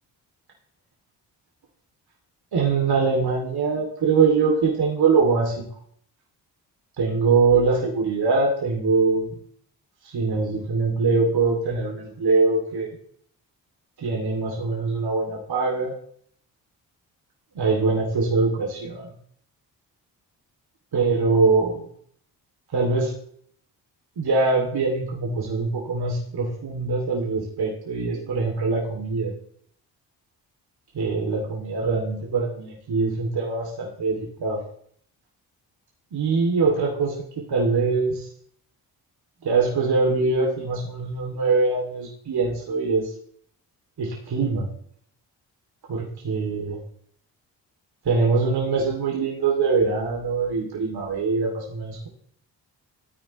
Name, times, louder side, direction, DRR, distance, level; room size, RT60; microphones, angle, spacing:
voice 1, 2.5-5.6 7.0-9.4 10.0-13.0 14.0-15.9 17.5-19.1 20.9-21.9 22.7-23.1 24.2-29.3 30.9-34.6 36.1-38.3 39.4-43.1 44.0-44.7 45.9-46.8 48.0-52.1, right 4 dB, 60° right, -2 dB, 2.7 m, -23 dB
14.5 x 9.1 x 3.1 m, 0.62 s
supercardioid pair, 55°, 43 cm